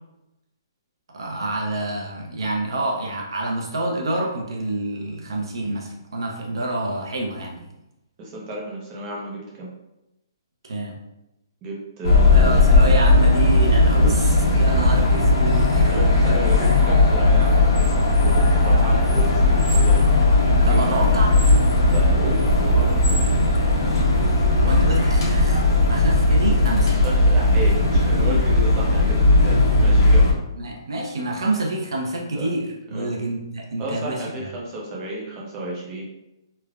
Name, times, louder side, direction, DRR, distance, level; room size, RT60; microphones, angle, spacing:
voice 1, 1.1-7.7 10.6-11.0 12.3-14.2 14.5-16.4 20.6-21.4 24.5-27.0 30.5-34.5, right 1 dB, 75° right, -1 dB, 0.6 m, -27 dB
voice 2, 8.2-9.7 11.6-12.6 14.0-14.1 15.9-20.0 20.6-20.9 21.9-23.2 26.9-30.3 32.3-32.5 32.9-33.1 33.8-36.0, right 1 dB, 20° right, -3 dB, 0.5 m, -32 dB
sound 1, 12.0-30.3, left 2 dB, 55° left, 0.9 m, -17 dB
3.2 x 2.1 x 2.4 m, 0.91 s
hypercardioid pair, 175°, 2 cm